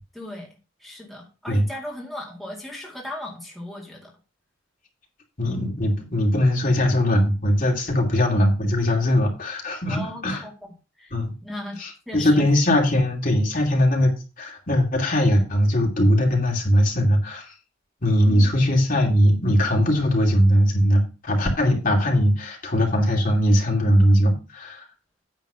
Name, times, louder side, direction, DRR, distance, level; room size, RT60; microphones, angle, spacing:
voice 1, 0.1-0.5 0.8-4.1 9.9-11.1 11.4-11.8 12.1-12.5 18.2-18.5, left 1 dB, ahead, -3 dB, 2.2 m, -37 dB
voice 2, 5.4-10.4 11.1-11.3 11.8-17.5 18.0-24.8, equal, 45° left, 0 dB, 2.8 m, -20 dB
9.4 x 4.1 x 6.7 m, 0.32 s
head